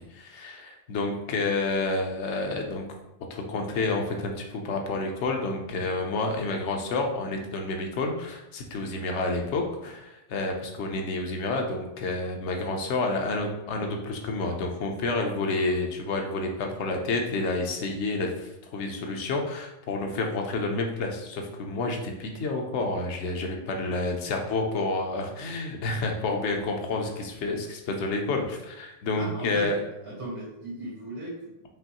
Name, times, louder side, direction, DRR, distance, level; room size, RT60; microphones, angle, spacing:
voice 1, 0.0-2.8 3.3-29.7, left 3 dB, 60° left, 2 dB, 1.0 m, -29 dB
voice 2, 8.9-9.2 10.5-10.7 15.5-15.8 27.2-27.3 29.2-29.7 30.0-31.5, right 1 dB, 80° right, -5 dB, 2.2 m, -39 dB
5.4 x 3.0 x 2.9 m, 0.93 s
omnidirectional pair, 1.4 m